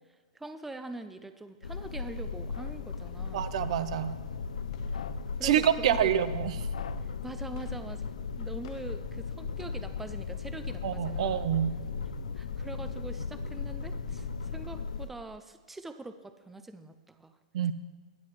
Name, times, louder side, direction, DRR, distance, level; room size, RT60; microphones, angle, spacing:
voice 1, 0.3-3.4 4.9-5.0 5.4-6.2 7.2-8.1 8.4-11.5 12.3-17.3, right 2 dB, 5° right, 9 dB, 0.5 m, -43 dB
sound 1, 1.6-15.1, left 5 dB, 90° left, 0.5 m, -37 dB
sound 2, 2.2-14.8, left 7 dB, 55° left, 0.9 m, -46 dB
voice 2, 3.3-4.1 5.4-6.5 10.8-11.7 17.5-17.7, right 10 dB, 60° right, 13 dB, 0.7 m, -27 dB
22.0 x 7.5 x 3.2 m, 1.4 s
hypercardioid pair, 135°, 4 cm